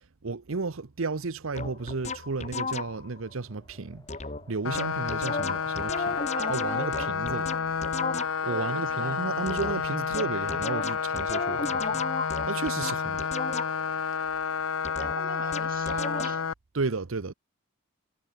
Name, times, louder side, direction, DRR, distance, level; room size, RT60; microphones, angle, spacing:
voice 1, 0.2-4.1 4.5-6.2 6.5-7.4 8.4-13.3 16.7-17.3, right 4 dB, 75° right, 0.8 m, -33 dB
sound 1, 1.5-3.2 4.1-4.4 4.7-8.6 9.5-14.0 14.8-16.5, left 4 dB, 35° left, 1.7 m, -34 dB
Wind, 2.5-11.2, left 1 dB, 15° left, 7.2 m, -60 dB
sound 2, 4.6-16.5, left 6 dB, 85° left, 1.0 m, -30 dB
voice 2, 6.4-7.7 8.4-9.3 15.0-16.5, right 3 dB, 40° right, 6.5 m, -41 dB
head